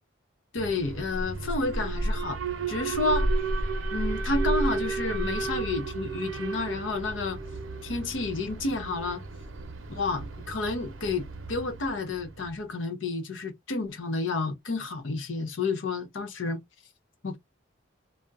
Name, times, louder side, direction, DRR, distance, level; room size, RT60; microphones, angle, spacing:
voice 1, 0.5-2.4 2.7-3.3 3.9-7.4 7.8-9.2 9.9-16.6 17.2-17.4, left 3 dB, 65° left, 0.7 m, -30 dB
Alarm, 0.6-12.6, right 2 dB, 80° right, 0.6 m, -32 dB
2.3 x 2.1 x 3.8 m
head